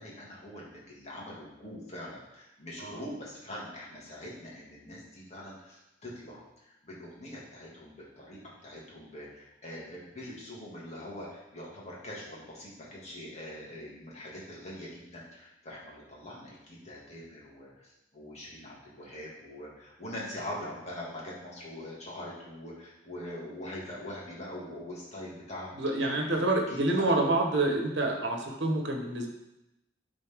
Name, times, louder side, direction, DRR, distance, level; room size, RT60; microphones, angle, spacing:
voice 1, 0.0-25.7 26.0-27.1, left 1 dB, 35° left, -5 dB, 2.1 m, -43 dB
voice 2, 25.8-29.3, right 2 dB, 70° right, 2 dB, 1.2 m, -27 dB
10.5 x 4.1 x 3.6 m, 0.92 s
head